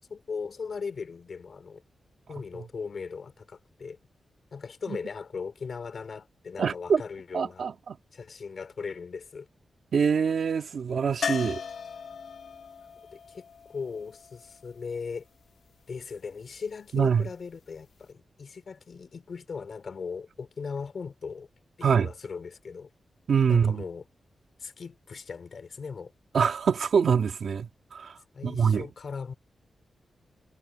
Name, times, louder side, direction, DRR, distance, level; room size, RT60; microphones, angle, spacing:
voice 1, 0.0-1.8 2.3-4.0 4.5-7.7 8.1-9.5 13.1-15.3 15.9-21.5 21.8-22.9 23.5-24.0 24.6-26.1 28.3-29.3, left 5 dB, 50° left, 2.6 m, -38 dB
voice 2, 6.6-7.0 7.3-8.0 9.9-11.6 16.9-17.3 21.8-22.1 23.3-23.8 26.3-28.9, right 6 dB, 65° right, 1.7 m, -25 dB
sound 1, 11.2-15.1 17.8-17.9 18.1-18.2, left 6 dB, 70° left, 1.5 m, -37 dB
wide cardioid pair, 150°, 0 cm